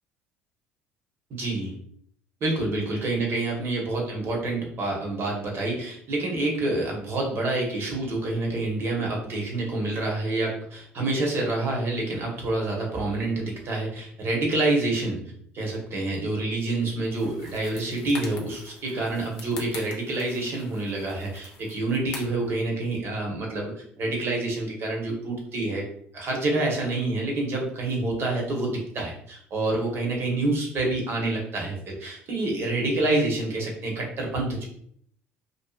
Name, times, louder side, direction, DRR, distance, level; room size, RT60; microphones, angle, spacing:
voice 1, 1.3-1.7 2.4-15.2 15.5-25.8 26.1-34.6, right 2 dB, 50° right, -1 dB, 1.0 m, -27 dB
sound 1, 17.1-22.5, left 4 dB, 80° left, 0.6 m, -44 dB
2.6 x 2.4 x 2.3 m, 0.65 s
supercardioid pair, 75°, 5 cm